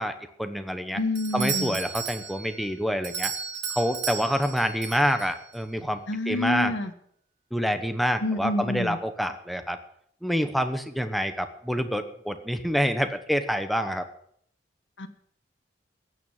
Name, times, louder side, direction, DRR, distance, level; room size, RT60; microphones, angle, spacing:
voice 1, 0.0-1.0 1.3-3.3 3.7-6.0 6.3-6.7 7.5-9.8 10.2-14.1, equal, ahead, 7 dB, 1.0 m, -27 dB
voice 2, 0.9-1.8 6.1-6.9 8.2-9.0 15.0-15.1, left 1 dB, 85° left, 6 dB, 1.3 m, -28 dB
Doorbell, 1.2-5.6, right 7 dB, 80° right, 1.4 m, -34 dB
15.5 x 9.4 x 7.3 m, 0.67 s
head